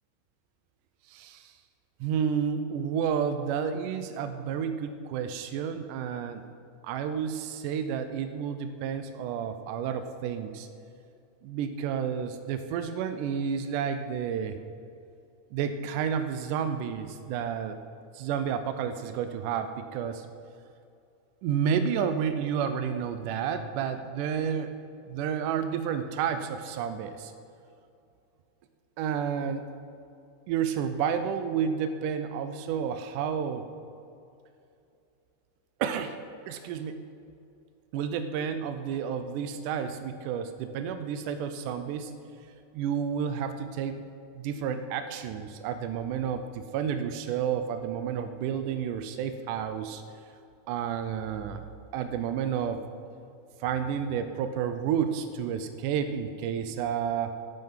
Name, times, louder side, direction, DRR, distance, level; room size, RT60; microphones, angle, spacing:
voice 1, 1.1-1.5 2.0-6.4 6.8-10.7 11.4-14.6 15.5-17.8 18.1-20.3 21.4-24.7 25.1-27.3 29.0-29.6 30.5-33.7 35.8-36.2 36.5-37.0 37.9-42.1 42.7-44.0 44.4-50.0 50.7-51.7 51.9-52.8 53.6-57.3, right 7 dB, 80° right, 9 dB, 2.2 m, -30 dB
13.5 x 9.3 x 5.7 m, 2.6 s
omnidirectional pair, 3.7 m